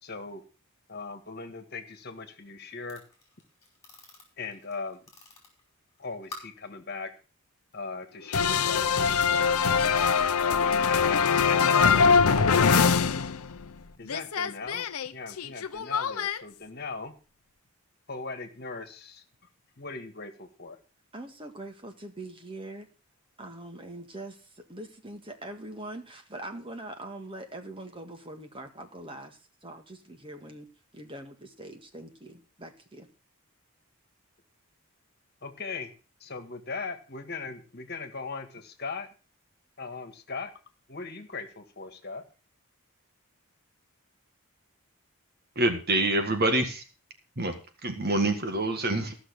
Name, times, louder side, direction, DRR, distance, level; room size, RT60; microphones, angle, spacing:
voice 1, 0.0-0.4 0.9-3.0 4.4-5.0 6.0-7.1 7.7-9.7 10.4-11.2 11.5-13.1 14.0-14.9 15.1-17.1 18.1-19.2 19.8-20.8 35.4-35.9 36.2-39.1 39.8-40.5 40.9-42.2, left 4 dB, 45° left, 8 dB, 1.8 m, -39 dB
sound 1, 2.9-6.7 7.6-7.7 8.1-8.7, left 3 dB, 15° left, 4.7 m, -49 dB
sound 2, 8.3-13.8 14.0-16.4, left 6 dB, 85° left, 0.7 m, -23 dB
voice 2, 21.1-22.9 23.4-30.7 30.9-33.1, right 1 dB, 25° right, 6 dB, 1.8 m, -43 dB
voice 3, 45.5-46.8 47.4-47.6 47.8-49.2, right 2 dB, 45° right, 6 dB, 1.6 m, -26 dB
14.5 x 6.4 x 6.4 m, 0.35 s
head